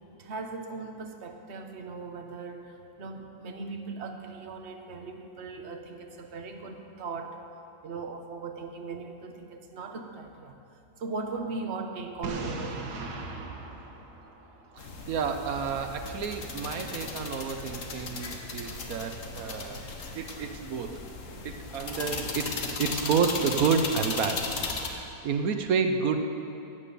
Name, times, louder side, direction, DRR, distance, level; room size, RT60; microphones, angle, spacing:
voice 1, 0.2-2.7 3.0-7.4 7.8-10.6 11.0-13.1, right 3 dB, 45° right, 4 dB, 1.3 m, -38 dB
Boom, 12.2-15.1, right 3 dB, 85° right, 1.8 m, -38 dB
voice 2, 14.7-19.9 20.1-21.1 21.4-26.3, right 5 dB, 70° right, 7 dB, 1.3 m, -30 dB
sound 1, 14.8-24.9, left 4 dB, 55° left, 1.5 m, -36 dB
15.5 x 9.3 x 6.8 m, 2.7 s
omnidirectional pair, 1.7 m